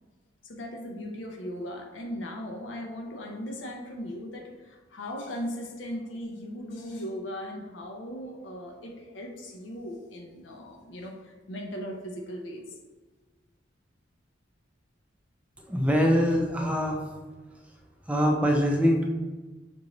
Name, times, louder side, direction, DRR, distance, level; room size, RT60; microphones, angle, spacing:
voice 1, 0.4-12.8, equal, 70° left, 2 dB, 0.6 m, -38 dB
voice 2, 15.7-17.0 18.1-19.0, equal, 5° right, 1 dB, 0.5 m, -23 dB
6.0 x 2.6 x 2.9 m, 1.3 s
head